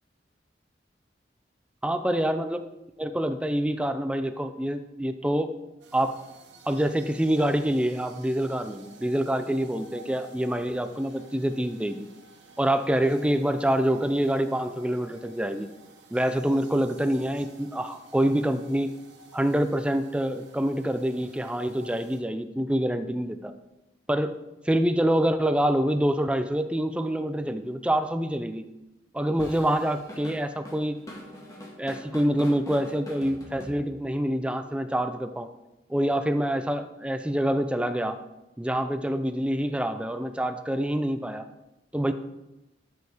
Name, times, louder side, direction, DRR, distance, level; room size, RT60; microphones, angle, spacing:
voice 1, 1.8-2.7 3.0-5.5 5.9-6.1 6.7-12.1 12.6-15.7 16.1-18.9 19.3-23.5 24.1-24.4 24.7-28.7 29.1-31.0 31.8-35.5 35.9-38.2 38.6-41.5 41.9-42.1, right 1 dB, 5° right, 9 dB, 0.4 m, -26 dB
sound 1, 5.8-22.2, right 2 dB, 90° right, 1.2 m, -52 dB
Drum kit / Drum, 29.4-34.2, equal, 20° left, 1.7 m, -43 dB
13.0 x 6.4 x 3.5 m, 0.99 s
head